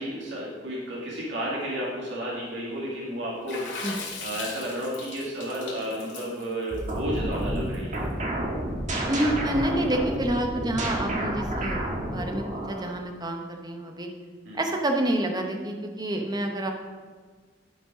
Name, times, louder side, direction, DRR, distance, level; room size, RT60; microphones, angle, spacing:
voice 1, 0.0-3.6 4.2-8.0 14.5-14.6, equal, 75° right, -5 dB, 2.2 m, -32 dB
Water / Splash splatter, 3.5-7.9, left 4 dB, 80° left, 2.3 m, -38 dB
sound 1, 6.7-12.9, right 1 dB, 40° right, 1.5 m, -30 dB
voice 2, 9.1-14.1 14.5-16.7, right 1 dB, 20° right, 3 dB, 0.9 m, -28 dB
11.0 x 5.1 x 4.9 m, 1.5 s
head